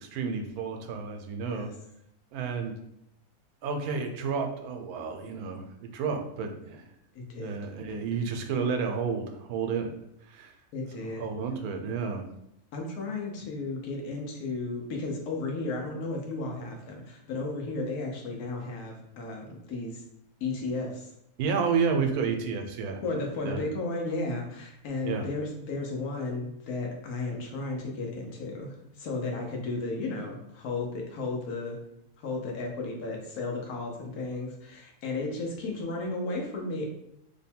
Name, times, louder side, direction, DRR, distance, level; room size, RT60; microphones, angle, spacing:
voice 1, 0.0-1.7 2.3-2.7 3.6-6.8 7.3-9.9 10.3-10.5 11.0-12.2 21.4-23.0 23.4-23.6 25.0-25.3, right 5 dB, 85° right, 4 dB, 1.1 m, -31 dB
voice 2, 7.1-7.6 10.7-11.2 12.7-20.0 20.4-21.1 23.0-31.8 32.2-36.9, left 3 dB, 85° left, 0 dB, 1.3 m, -34 dB
3.2 x 2.2 x 4.3 m, 0.78 s
omnidirectional pair, 1.5 m